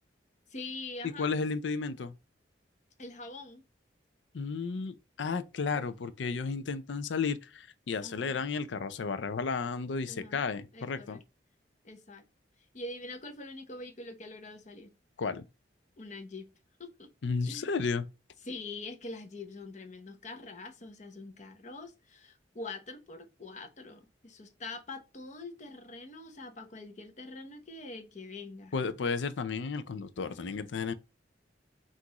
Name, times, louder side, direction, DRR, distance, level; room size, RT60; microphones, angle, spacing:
voice 1, 0.5-1.3 3.0-3.6 5.7-5.9 8.0-8.4 10.0-10.4 10.7-11.2 11.8-12.2 12.7-14.9 16.0-16.5 16.8-17.1 17.4-17.7 18.4-28.7, left 2 dB, 40° left, 0.8 m, -44 dB
voice 2, 1.2-2.1 4.3-11.2 15.2-15.5 17.2-18.1 28.7-30.9, left 4 dB, 80° left, 0.5 m, -33 dB
5.9 x 2.5 x 2.9 m
head